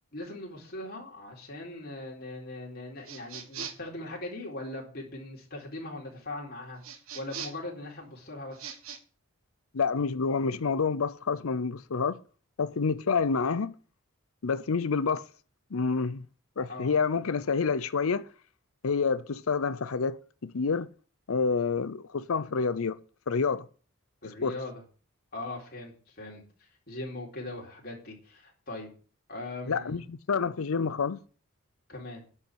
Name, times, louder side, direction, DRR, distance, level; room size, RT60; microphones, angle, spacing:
voice 1, 0.1-6.8 7.1-8.7 16.7-16.9 24.2-24.8 25.3-26.4 26.9-28.9 29.3-30.0 31.9-32.2, left 2 dB, 45° left, 4.0 m, -40 dB
sound 1, 3.0-3.9 6.8-7.7 8.5-9.0, right 6 dB, 75° right, 1.5 m, -41 dB
voice 2, 9.7-12.2 12.6-13.7 14.4-15.2 15.7-16.3 16.6-18.3 18.8-20.9 21.3-23.0 23.3-23.7 24.4-24.5 29.7-31.2, left 5 dB, 75° left, 0.6 m, -28 dB
10.5 x 5.7 x 8.1 m
head